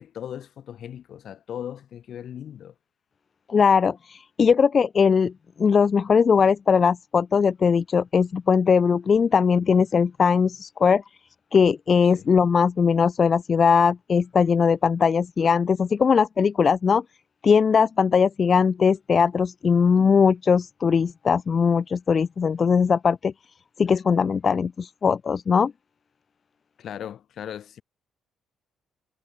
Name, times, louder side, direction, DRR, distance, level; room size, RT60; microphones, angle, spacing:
voice 1, 0.0-2.7 12.1-12.3 26.8-27.8, left 10 dB, 60° left, 3.2 m, -37 dB
voice 2, 3.5-5.3 5.6-11.0 11.5-17.0 17.4-23.3 23.8-25.7, left 6 dB, 35° left, 1.3 m, -20 dB
cardioid pair, 120°, 0 cm